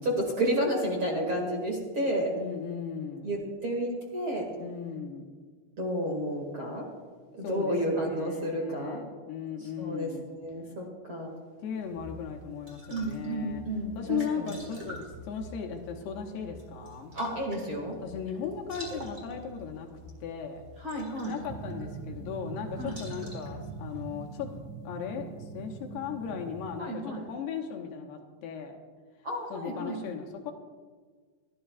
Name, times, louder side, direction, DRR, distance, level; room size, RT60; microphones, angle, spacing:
voice 1, 0.0-2.3 3.2-4.5 5.8-6.8 7.3-9.0 9.8-10.1 10.4-11.4 12.9-14.5 17.1-18.0 20.8-21.4 22.8-22.9 26.8-27.3 29.2-30.0, right 1 dB, 40° right, -1 dB, 2.0 m, -31 dB
voice 2, 2.4-3.3 4.6-5.3 7.4-10.3 11.6-13.6 14.0-17.1 18.0-19.9 20.2-20.6 21.2-24.5 24.8-28.8 29.5-30.5, left 7 dB, 80° left, 2 dB, 3.2 m, -37 dB
sound 1, 11.7-24.6, equal, 15° right, 4.0 m, -47 dB
sound 2, 21.5-26.8, right 5 dB, 65° right, 2.2 m, -42 dB
29.0 x 12.5 x 2.4 m, 1.5 s
omnidirectional pair, 4.8 m